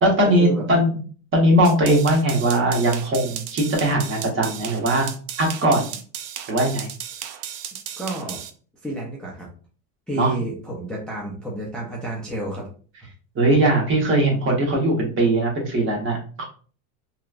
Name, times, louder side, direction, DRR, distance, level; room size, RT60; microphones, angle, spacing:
voice 1, 0.0-0.9 1.3-5.1 5.4-5.9 6.5-6.9 10.1-10.3 13.3-16.4, right 1 dB, 30° right, 0 dB, 1.1 m, -20 dB
sound 1, 1.6-8.5, right 9 dB, 70° right, 0.6 m, -35 dB
voice 2, 8.0-8.4 8.8-9.5 10.1-12.7, right 1 dB, ahead, -4 dB, 0.5 m, -30 dB
2.9 x 2.3 x 2.4 m, 0.41 s
supercardioid pair, 115°, 44 cm